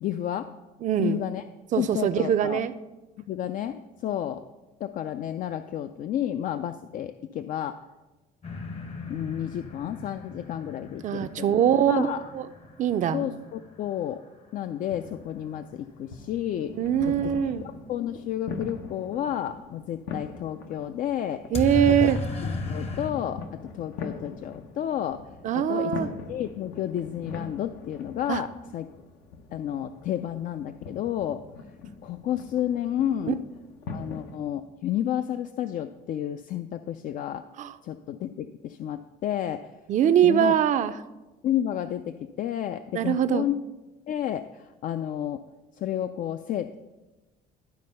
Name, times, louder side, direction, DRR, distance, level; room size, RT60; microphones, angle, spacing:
voice 1, 0.0-0.5 1.0-1.4 1.8-2.6 3.3-4.4 4.8-7.8 9.1-12.3 13.1-14.2 14.5-16.7 17.1-17.2 17.6-21.4 21.9-22.0 22.4-23.4 23.7-25.2 25.5-25.9 26.3-28.9 29.5-31.4 32.0-33.4 33.9-37.4 37.8-39.7 40.2-40.5 41.4-43.6 44.1-45.4 45.7-46.8, left 11 dB, 55° left, 10 dB, 0.4 m, -31 dB
voice 2, 0.8-1.2 1.7-2.7 11.0-12.1 12.3-12.5 12.8-13.3 16.8-17.7 21.5-22.2 25.4-26.1 28.3-28.4 33.3-33.4 37.6-37.7 39.9-40.9 42.9-43.5, right 9 dB, 45° right, 11 dB, 0.4 m, -22 dB
sound 1, 8.4-14.2 21.5-23.1, left 3 dB, 35° left, 0.8 m, -35 dB
sound 2, 14.8-34.4, left 4 dB, 80° left, 0.9 m, -42 dB
11.5 x 4.2 x 5.5 m, 1.1 s
cardioid pair, 110°, 17 cm